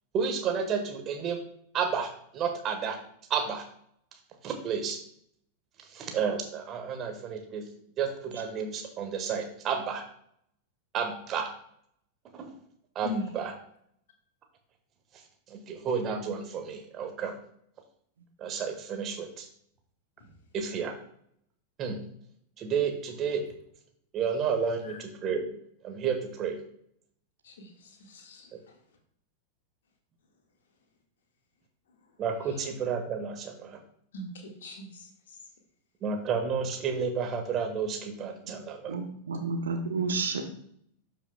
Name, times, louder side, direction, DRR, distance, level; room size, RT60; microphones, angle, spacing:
voice 1, 0.1-1.4 1.7-3.0 3.3-3.6 4.4-5.0 5.9-7.6 8.0-10.0 10.9-11.5 12.3-12.5 12.9-13.5 15.5-17.3 18.4-19.5 20.5-20.9 21.8-22.0 22.6-23.4 24.1-25.5 25.8-26.6 32.2-33.8 36.0-39.0, right 6 dB, 30° right, 4 dB, 1.5 m, -31 dB
voice 2, 27.4-28.7 32.4-32.6 34.1-35.1, left 2 dB, 60° left, 2 dB, 1.8 m, -40 dB
voice 3, 38.9-40.4, right 4 dB, 65° right, 4 dB, 1.1 m, -30 dB
12.5 x 5.7 x 2.3 m, 0.67 s
figure-of-eight pair, 90°, 0 cm